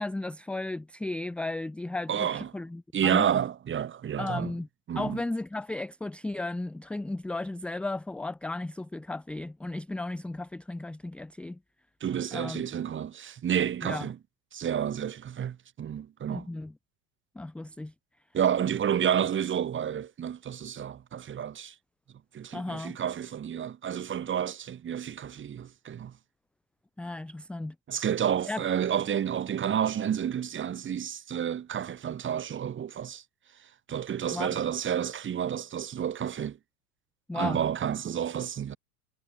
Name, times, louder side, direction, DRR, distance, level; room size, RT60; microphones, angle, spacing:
voice 1, 0.0-3.3 4.2-4.7 5.0-11.6 12.3-12.6 13.8-14.1 16.3-16.7 17.4-17.9 22.5-23.0 27.0-27.8 28.5-28.6 34.3-34.6 37.3-37.6, left 2 dB, ahead, 0.5 m, -35 dB
voice 2, 2.1-2.5 2.9-4.5 4.9-5.2 12.0-14.2 14.5-16.5 18.3-21.7 22.3-26.1 27.9-33.2 33.6-36.6 37.3-38.8, right 9 dB, 25° right, 2.1 m, -30 dB
figure-of-eight pair, 90°, 49 cm